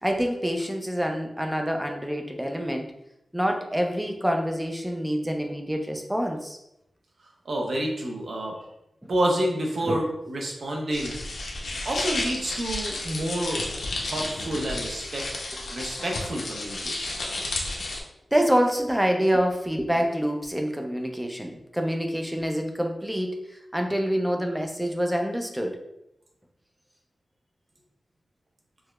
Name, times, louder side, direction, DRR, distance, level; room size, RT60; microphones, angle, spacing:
voice 1, 0.0-2.9 3.3-6.6 9.0-9.1 9.8-10.0 14.8-14.9 15.7-15.8 18.3-25.8, equal, 5° right, 3 dB, 0.4 m, -26 dB
voice 2, 7.5-8.6 9.1-11.2 11.8-13.6 14.0-15.2 15.7-17.1, right 1 dB, 60° right, 0 dB, 0.6 m, -28 dB
sound 1, 10.9-18.0, left 2 dB, 85° left, 0.6 m, -32 dB
4.5 x 2.0 x 2.2 m, 0.86 s
wide cardioid pair, 135°, 0 cm